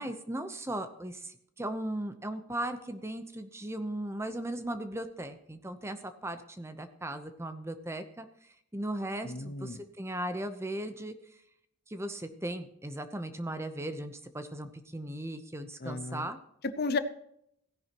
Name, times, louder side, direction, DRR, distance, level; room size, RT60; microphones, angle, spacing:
voice 1, 0.0-11.1 11.9-16.4, right 1 dB, 10° right, 9 dB, 0.8 m, -37 dB
voice 2, 9.2-9.8 15.8-16.3 16.8-17.0, left 4 dB, 50° left, 12 dB, 0.7 m, -33 dB
16.5 x 10.5 x 3.0 m, 0.73 s
head